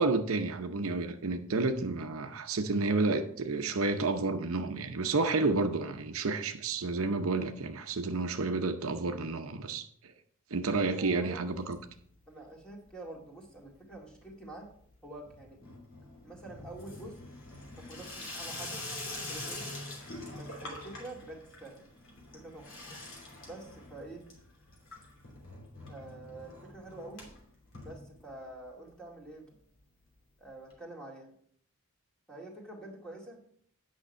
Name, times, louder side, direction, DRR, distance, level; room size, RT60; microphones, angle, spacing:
voice 1, 0.0-10.1 10.5-11.8, right 3 dB, 70° right, 0.7 m, -30 dB
voice 2, 10.9-11.6 12.3-14.7 15.0-15.6 16.2-17.2 17.8-18.8 19.3-19.7 20.3-21.9 22.3-22.7 23.4-24.2 25.9-27.3 27.8-29.6 30.4-31.3 32.3-33.4, right 2 dB, 5° left, 2.0 m, -47 dB
Water tap faucet / Sink (filling or washing), 11.5-12.2 12.5-13.1 13.4-28.6 29.0-29.1 29.3-29.4 29.6-29.7 30.7-30.8, left 2 dB, 60° left, 2.9 m, -45 dB
8.8 x 5.9 x 5.3 m
head